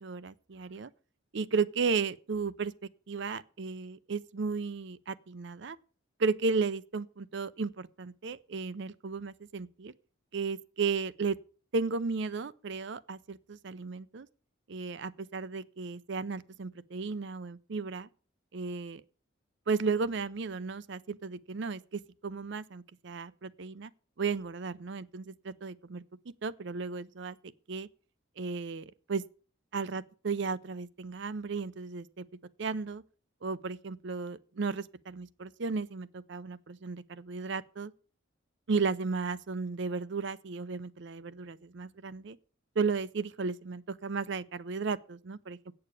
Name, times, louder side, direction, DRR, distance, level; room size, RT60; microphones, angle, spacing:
voice 1, 0.0-0.9 1.3-2.7 3.1-5.8 6.2-9.9 10.3-11.4 11.7-14.3 14.7-18.1 18.5-19.0 19.7-23.9 24.2-26.0 26.4-27.4 27.7-27.9 28.4-29.2 29.7-32.3 32.6-33.0 33.4-37.9 38.7-42.4 42.8-45.7, right 4 dB, 60° right, 0.5 m, -34 dB
8.7 x 6.7 x 8.3 m
head